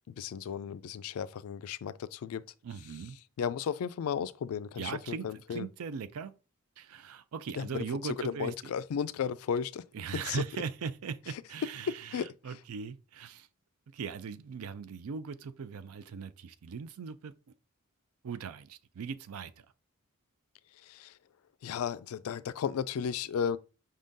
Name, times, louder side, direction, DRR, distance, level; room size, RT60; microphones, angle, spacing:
voice 1, 0.1-2.4 3.4-5.7 7.6-7.7 8.0-9.8 10.3-10.4 11.9-12.3 20.8-21.1 21.6-23.6, left 7 dB, 80° left, 0.3 m, -34 dB
voice 2, 2.6-3.2 4.8-6.3 6.8-8.7 9.9-13.5 13.9-17.3 18.2-19.7, right 6 dB, 85° right, 0.4 m, -39 dB
5.4 x 3.6 x 2.6 m
head